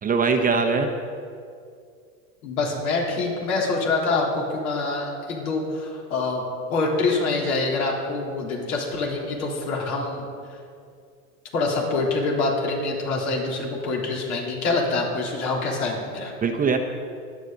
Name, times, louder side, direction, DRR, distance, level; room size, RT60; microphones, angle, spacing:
voice 1, 0.0-0.9 16.4-16.8, right 5 dB, 20° right, 4 dB, 0.8 m, -21 dB
voice 2, 2.4-6.4 6.7-10.3 11.5-16.3, left 3 dB, 70° left, -2 dB, 3.7 m, -25 dB
23.0 x 8.5 x 4.0 m, 2.3 s
hypercardioid pair, 110°, 44 cm